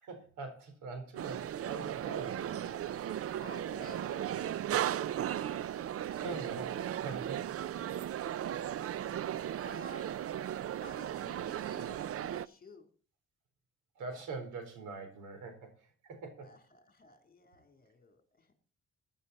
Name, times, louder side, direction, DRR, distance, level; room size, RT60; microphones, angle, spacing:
voice 1, 0.0-2.4 6.2-7.9 14.0-16.5, right 4 dB, 85° right, 7 dB, 4.2 m, -44 dB
sound 1, 1.2-12.5, right 11 dB, 50° right, 0.6 m, -36 dB
voice 2, 3.1-5.1 9.6-10.2 10.7-12.9 16.4-18.5, left 3 dB, 30° left, 5 dB, 3.4 m, -54 dB
15.5 x 10.5 x 4.2 m, 0.38 s
cardioid pair, 90°, 30 cm